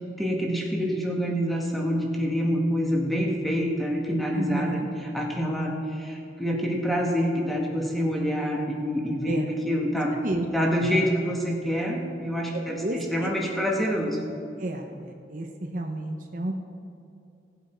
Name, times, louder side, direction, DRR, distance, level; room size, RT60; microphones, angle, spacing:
voice 1, 0.2-9.4 9.6-10.2 10.5-14.2, equal, ahead, -1 dB, 1.5 m, -26 dB
voice 2, 4.3-4.9 9.3-9.5 10.1-10.4 12.5-13.3 14.6-16.5, right 1 dB, 45° right, 3 dB, 0.9 m, -31 dB
17.5 x 8.1 x 4.5 m, 2.7 s
head